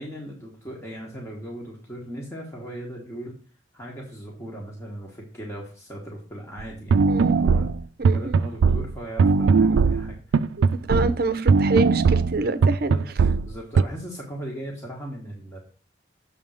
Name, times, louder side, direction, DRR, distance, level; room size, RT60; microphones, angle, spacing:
voice 1, 0.0-3.3 3.7-7.0 7.2-7.7 8.0-10.4 12.9-13.0 13.5-15.6, right 1 dB, 15° left, 1.4 m, -38 dB
sound 1, 6.6-6.7 6.9-11.2 11.5-13.8, right 5 dB, 85° right, 0.3 m, -19 dB
voice 2, 8.0-8.3 10.9-12.9, right 2 dB, 55° right, 0.7 m, -26 dB
7.0 x 3.6 x 6.3 m
head